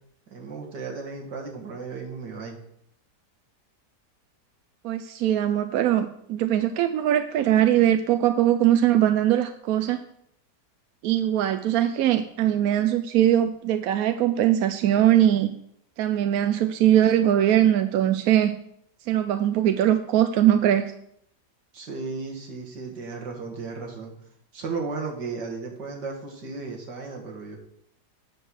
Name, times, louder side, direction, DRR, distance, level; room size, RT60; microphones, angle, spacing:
voice 1, 0.3-2.6 21.7-24.1 24.5-27.6, right 4 dB, 90° right, 1 dB, 2.4 m, -35 dB
voice 2, 4.8-10.0 11.0-15.5 16.0-18.5 19.1-20.9, right 11 dB, 70° right, 9 dB, 0.9 m, -21 dB
9.0 x 6.0 x 6.3 m, 0.72 s
omnidirectional pair, 1.8 m